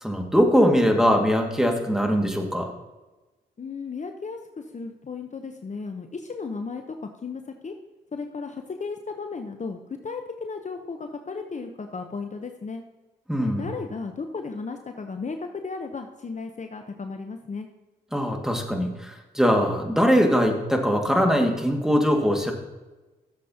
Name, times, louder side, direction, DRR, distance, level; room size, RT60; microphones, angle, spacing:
voice 1, 0.0-2.7 13.3-13.7 18.1-22.5, equal, 5° right, 2 dB, 2.0 m, -21 dB
voice 2, 3.6-4.4 4.7-7.7 8.1-12.8 13.4-15.4 15.6-17.7, left 4 dB, 40° left, 5 dB, 0.9 m, -35 dB
13.0 x 7.5 x 2.9 m, 1.1 s
supercardioid pair, 45°, 19 cm